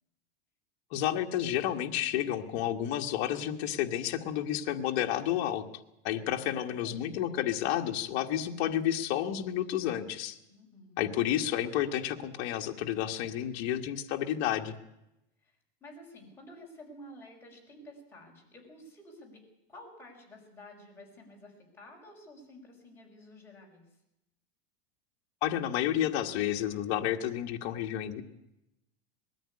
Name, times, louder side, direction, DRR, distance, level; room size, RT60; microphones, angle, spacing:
voice 1, 0.9-5.6 6.0-10.4 11.0-14.7 25.4-28.2, left 11 dB, 45° left, 3 dB, 1.5 m, -31 dB
voice 2, 6.3-7.1 10.5-11.0 15.4-19.4 19.7-24.0, left 1 dB, 5° left, -3 dB, 5.6 m, -52 dB
20.5 x 14.0 x 9.7 m, 0.88 s
supercardioid pair, 160°, 32 cm